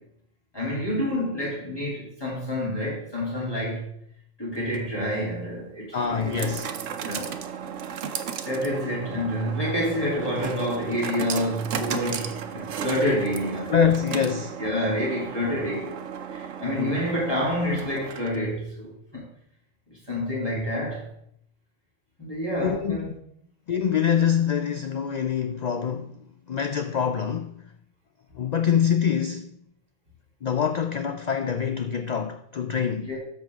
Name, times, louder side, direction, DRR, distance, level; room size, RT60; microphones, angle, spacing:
voice 1, 0.5-3.9 4.4-6.6 7.0-7.7 8.4-13.7 14.6-16.0 16.3-19.3 19.9-21.1 22.2-23.2 33.0-33.2, equal, 20° left, 3.1 m, -28 dB
sound 1, 4.5-18.5, right 8 dB, 75° right, 1.0 m, -35 dB
voice 2, 5.9-6.7 13.7-14.6 22.6-23.1 23.7-27.5 28.3-29.6 30.4-33.1, left 7 dB, 80° left, 0.3 m, -25 dB
12.5 x 4.7 x 3.5 m
omnidirectional pair, 1.3 m